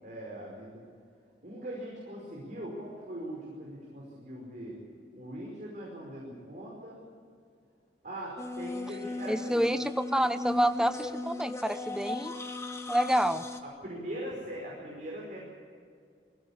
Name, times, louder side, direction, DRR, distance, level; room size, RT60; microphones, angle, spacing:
voice 1, 0.0-0.8 1.4-4.8 5.1-7.0 8.0-9.6 13.8-15.4, right 1 dB, 45° right, -3 dB, 5.2 m, -41 dB
sound 1, 8.4-13.6, left 2 dB, 15° left, 1.3 m, -37 dB
voice 2, 9.2-12.3 12.9-13.4, equal, 5° right, 11 dB, 0.7 m, -28 dB
22.5 x 16.5 x 8.7 m, 2.2 s
head